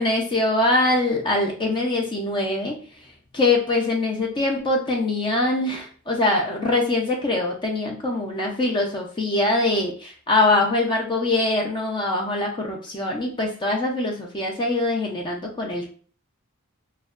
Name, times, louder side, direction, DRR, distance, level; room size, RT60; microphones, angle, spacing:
voice 1, 0.0-2.8 3.3-15.9, left 2 dB, 25° left, 0 dB, 0.4 m, -23 dB
2.5 x 2.1 x 2.3 m, 0.42 s
head